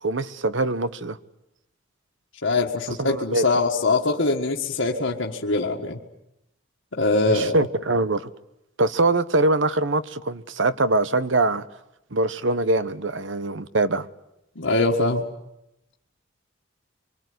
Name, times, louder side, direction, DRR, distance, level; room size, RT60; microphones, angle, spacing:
voice 1, 0.0-1.2 3.0-3.4 7.3-8.3 8.8-11.6 12.1-14.1, right 2 dB, 70° right, 1.1 m, -23 dB
voice 2, 2.4-6.0 6.9-7.7 14.6-15.2, left 3 dB, 75° left, 1.8 m, -23 dB
25.5 x 24.0 x 9.6 m
head